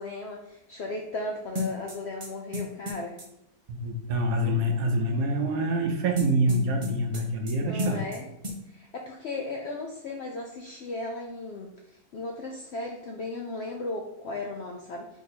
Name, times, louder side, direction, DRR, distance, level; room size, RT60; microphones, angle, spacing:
voice 1, 0.0-3.2 7.5-8.3 8.7-15.2, left 2 dB, 70° left, 0 dB, 0.6 m, -36 dB
sound 1, 1.5-3.3 6.2-7.5 7.8-8.2 8.4-8.6, left 2 dB, 30° right, 0.6 m, -33 dB
voice 2, 3.7-8.0, right 1 dB, 70° right, 3 dB, 1.1 m, -26 dB
3.6 x 3.0 x 4.2 m, 0.78 s
omnidirectional pair, 1.6 m